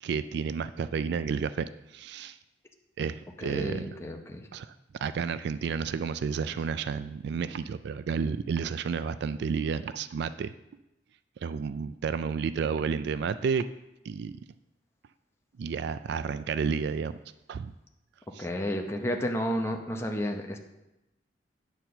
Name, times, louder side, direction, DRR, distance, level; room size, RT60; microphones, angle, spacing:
voice 1, 0.0-2.4 3.0-3.9 4.5-4.7 5.0-10.5 11.4-13.7 14.0-14.3 15.6-17.2 17.5-17.7 18.3-18.5, right 6 dB, 65° right, 13 dB, 0.3 m, -31 dB
voice 2, 3.4-4.4 18.4-20.6, equal, 15° left, 2 dB, 0.7 m, -31 dB
9.3 x 4.4 x 6.7 m, 0.95 s
head